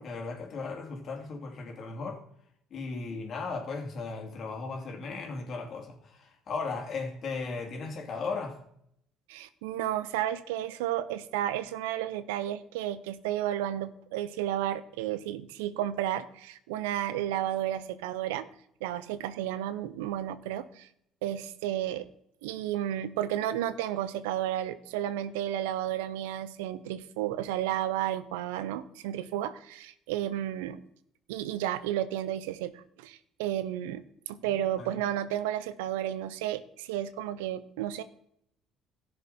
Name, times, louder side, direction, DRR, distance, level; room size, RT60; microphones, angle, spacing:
voice 1, 0.0-2.2 2.7-8.6 34.5-35.0, left 4 dB, 55° left, 3.3 m, -36 dB
voice 2, 9.3-18.4 18.8-20.9 21.2-22.1 22.4-30.8 31.3-38.0, right 12 dB, 85° right, 0.7 m, -32 dB
16.0 x 6.7 x 4.3 m
supercardioid pair, 70°, 0 cm